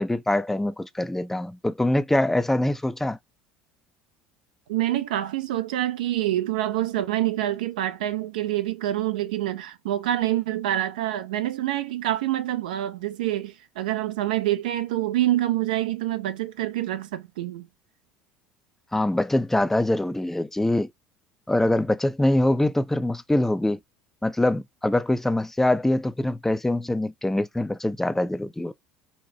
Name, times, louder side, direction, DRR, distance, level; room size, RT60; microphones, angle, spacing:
voice 1, 0.0-3.2 18.9-20.9 21.5-23.8 24.2-28.7, left 1 dB, 5° left, 0.4 m, -24 dB
voice 2, 4.7-17.7, right 13 dB, 75° right, 0.5 m, -26 dB
4.3 x 2.1 x 2.6 m
hypercardioid pair, 70°, 5 cm